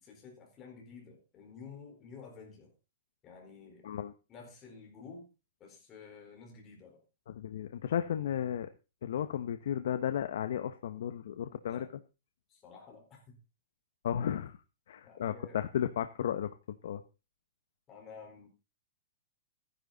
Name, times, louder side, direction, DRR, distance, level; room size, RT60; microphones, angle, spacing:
voice 1, 0.0-2.7 3.2-3.9 4.3-5.3 5.6-7.0 11.6-11.9 12.5-13.4 15.0-15.7 17.9-18.5, left 5 dB, 20° left, 1 dB, 4.2 m, -51 dB
voice 2, 7.3-8.7 9.0-11.9 14.0-14.6 14.9-17.0, left 9 dB, 65° left, 9 dB, 0.9 m, -34 dB
14.0 x 10.5 x 4.0 m, 0.30 s
hypercardioid pair, 170°, 0 cm